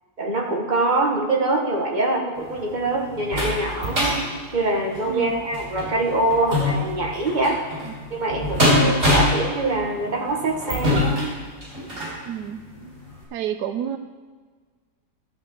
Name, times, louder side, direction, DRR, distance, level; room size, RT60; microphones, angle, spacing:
voice 1, 0.2-4.3 4.5-7.6 8.1-11.3, right 2 dB, 30° right, 0 dB, 1.6 m, -24 dB
sound 1, 2.4-12.2 12.8-12.9 13.2-13.3, left 1 dB, 50° right, 4.2 m, -25 dB
voice 2, 5.1-5.4 7.8-8.0 12.2-12.6 13.3-14.0, right 9 dB, 85° right, 9 dB, 1.2 m, -30 dB
13.0 x 5.7 x 7.1 m, 1.5 s
omnidirectional pair, 1.7 m